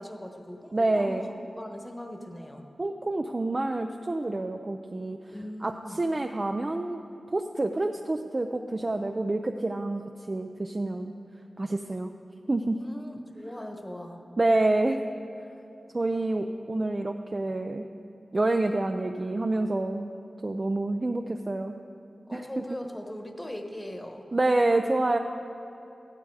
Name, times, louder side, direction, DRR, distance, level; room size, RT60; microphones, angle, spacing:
voice 1, 0.0-2.6 5.2-6.0 12.8-14.2 22.3-24.3, equal, 15° left, 4 dB, 1.2 m, -40 dB
voice 2, 0.7-1.3 2.8-7.0 7.3-10.0 10.3-11.1 11.6-12.1 12.5-12.8 14.4-15.0 15.9-17.9 18.3-20.1 20.4-21.8 22.3-22.8 24.3-25.2, right 2 dB, 35° right, 5 dB, 0.5 m, -27 dB
15.0 x 12.0 x 4.8 m, 2.8 s
wide cardioid pair, 80°, 0 cm